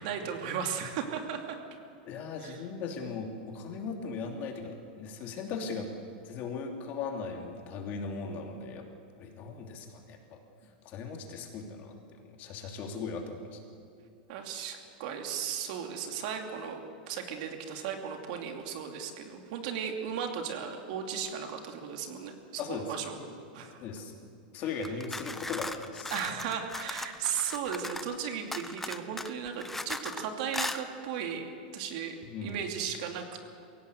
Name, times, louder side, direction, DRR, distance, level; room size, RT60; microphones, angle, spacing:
voice 1, 0.0-1.6 2.4-2.6 14.3-23.2 23.5-23.8 24.6-24.8 26.1-31.5 31.7-32.2 32.4-33.4, right 7 dB, 55° right, 4 dB, 2.6 m, -36 dB
voice 2, 2.1-5.9 6.3-8.8 9.2-10.4 10.8-12.0 12.4-13.6 22.6-22.8 23.2-23.3 23.8-24.1 24.5-26.1 32.2-32.6, left 5 dB, 35° left, 2 dB, 2.9 m, -38 dB
sound 1, 24.8-28.2 28.5-30.2 30.5-30.8, left 2 dB, 5° left, 0.7 m, -38 dB
22.5 x 17.0 x 8.2 m, 2.4 s
supercardioid pair, 155°, 5 cm